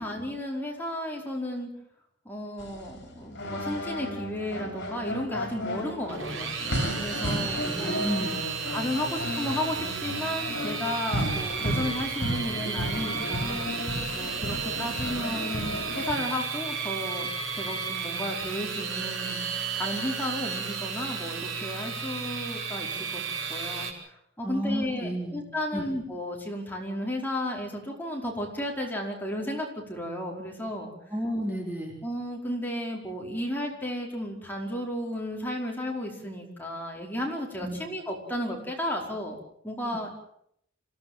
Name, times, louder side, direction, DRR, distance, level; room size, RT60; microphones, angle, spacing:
voice 1, 0.0-1.7 2.2-8.1 8.7-19.4 19.8-23.2 23.5-30.9 32.0-39.4 39.6-40.1, left 1 dB, 10° left, -1 dB, 5.0 m, -33 dB
sound 1, 2.6-16.1, left 1 dB, 60° left, 7.2 m, -33 dB
sound 2, 6.1-23.9, right 5 dB, 80° right, 5.2 m, -33 dB
voice 2, 7.3-8.5 24.4-25.4 25.7-25.9 31.1-31.9 37.6-37.8, equal, 10° right, 0 dB, 4.1 m, -32 dB
26.5 x 17.0 x 7.6 m, 0.71 s
head